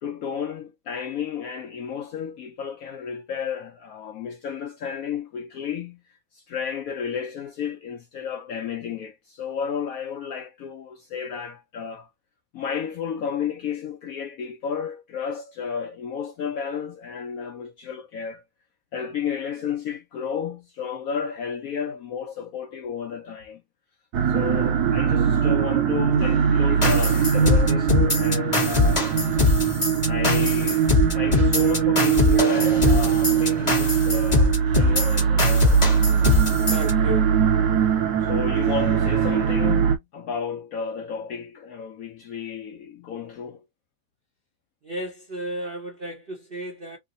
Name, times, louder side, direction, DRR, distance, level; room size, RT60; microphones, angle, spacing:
voice 1, 0.0-6.0 6.3-12.1 12.5-18.4 18.9-23.6 24.3-29.1 29.4-29.5 30.1-30.9 31.1-36.0 37.8-37.9 38.2-43.6, left 7 dB, 75° left, 0.8 m, -32 dB
sound 1, 24.1-40.0, right 7 dB, 70° right, 1.0 m, -21 dB
sound 2, 26.8-36.9, left 3 dB, 25° left, 0.8 m, -22 dB
voice 2, 36.7-37.3 44.8-47.0, right 1 dB, 50° right, 0.7 m, -33 dB
3.2 x 2.0 x 3.7 m
omnidirectional pair, 2.0 m